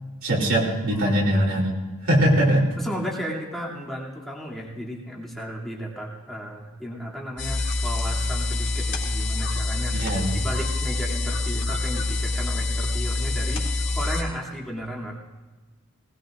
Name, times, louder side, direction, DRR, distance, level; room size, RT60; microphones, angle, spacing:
voice 1, 0.2-1.7 2.0-2.7 9.9-10.3, equal, 65° right, -4 dB, 2.9 m, -21 dB
voice 2, 2.8-10.1 10.3-15.2, equal, ahead, -4 dB, 2.7 m, -34 dB
sound 1, 7.4-14.2, left 2 dB, 55° left, 3.5 m, -26 dB
20.0 x 19.0 x 2.5 m, 1.3 s
head